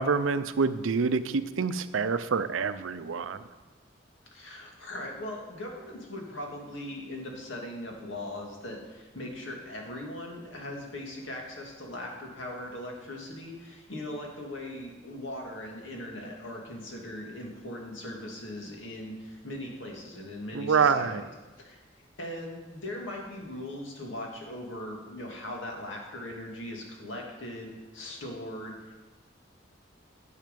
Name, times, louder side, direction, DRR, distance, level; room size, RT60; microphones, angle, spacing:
voice 1, 0.0-3.4 20.5-21.2, right 5 dB, 85° right, 12 dB, 0.5 m, -26 dB
voice 2, 4.3-21.3 21.6-29.0, left 1 dB, 75° left, 0 dB, 2.1 m, -39 dB
10.5 x 6.5 x 5.3 m, 1.2 s
head